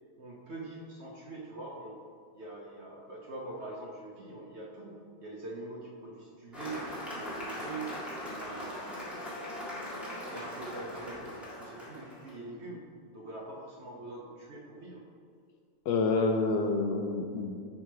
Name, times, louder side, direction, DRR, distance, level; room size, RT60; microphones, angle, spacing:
voice 1, 0.2-2.0 2.3-9.2 10.3-12.8 13.1-15.1, right 2 dB, 50° right, -3 dB, 1.0 m, -44 dB
Cheering / Applause, 6.5-12.3, left 1 dB, ahead, 1.8 m, -40 dB
voice 2, 15.9-17.6, left 3 dB, 75° left, 4 dB, 1.1 m, -28 dB
10.0 x 3.8 x 4.7 m, 2.2 s
omnidirectional pair, 1.9 m